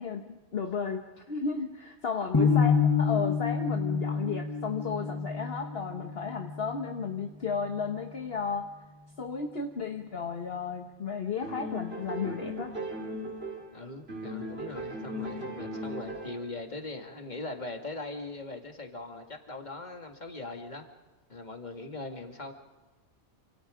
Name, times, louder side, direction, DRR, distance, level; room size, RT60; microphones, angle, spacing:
voice 1, 0.0-8.7 9.2-12.7, left 5 dB, 50° left, 4 dB, 1.5 m, -34 dB
sound 1, 2.3-8.4, left 5 dB, 20° left, 1.2 m, -29 dB
voice 2, 2.4-2.9 13.7-20.8 21.3-22.5, left 2 dB, 35° left, 4 dB, 2.3 m, -40 dB
sound 2, 11.4-13.8 14.1-16.5, equal, 55° right, 4.4 m, -37 dB
28.5 x 26.5 x 5.1 m, 1.2 s
omnidirectional pair, 1.3 m